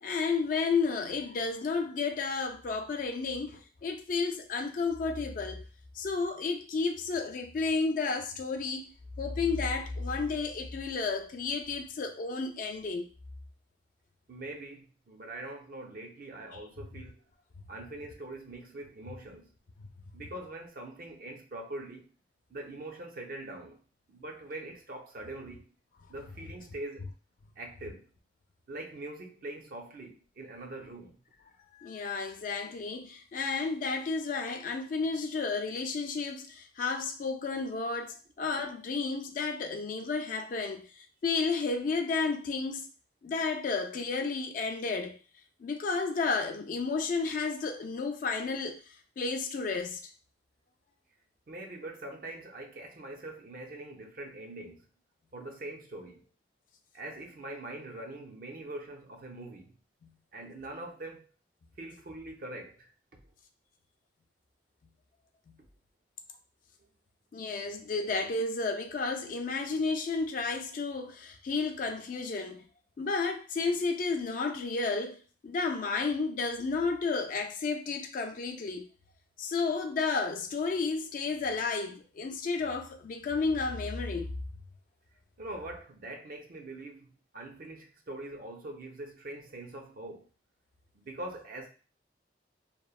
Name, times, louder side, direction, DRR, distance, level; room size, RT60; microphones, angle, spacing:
voice 1, 0.0-5.6 6.0-8.8 9.2-13.1 31.7-42.9 43.2-45.2 45.6-48.8 49.2-50.0 60.0-60.1 65.5-65.6 67.3-72.6 73.0-78.9 79.4-84.3, left 4 dB, 50° left, 0.3 m, -32 dB
voice 2, 14.3-17.2 17.7-19.5 20.1-22.1 22.5-23.8 24.1-25.7 26.1-27.1 27.6-28.1 28.7-31.2 51.5-54.9 55.3-56.3 56.9-59.8 60.3-61.3 61.8-62.9 85.4-87.1 87.3-90.3 90.9-91.7, right 2 dB, 50° right, 0.5 m, -43 dB
2.9 x 2.1 x 2.3 m
head